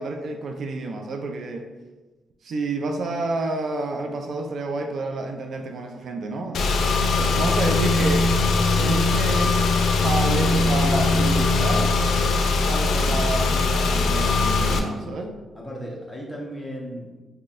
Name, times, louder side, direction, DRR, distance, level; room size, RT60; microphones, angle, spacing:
voice 1, 0.0-1.7 2.4-6.7 7.4-8.2 8.7-9.7 10.0-11.9 12.6-15.4, right 2 dB, 60° right, 4 dB, 0.3 m, -29 dB
Car / Engine, 6.5-14.8, left 3 dB, 75° left, 0.4 m, -21 dB
voice 2, 14.6-15.2 15.5-17.2, equal, ahead, -3 dB, 0.8 m, -36 dB
3.9 x 2.7 x 2.5 m, 1.2 s
cardioid pair, 110°, 0 cm